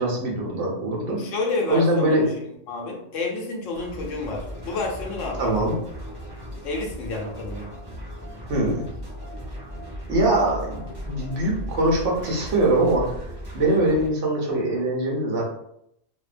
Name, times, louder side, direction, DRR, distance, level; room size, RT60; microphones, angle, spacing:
voice 1, 0.0-1.2 1.7-2.3 5.4-5.7 8.5-8.9 10.1-13.2 13.5-15.4, right 1 dB, 75° right, -2 dB, 1.1 m, -22 dB
voice 2, 1.2-2.2 2.7-5.6 6.6-7.7, left 3 dB, 85° left, 0 dB, 1.0 m, -29 dB
sound 1, 3.7-14.1, equal, 30° right, 0.5 m, -37 dB
2.6 x 2.1 x 2.4 m, 0.76 s
omnidirectional pair, 1.3 m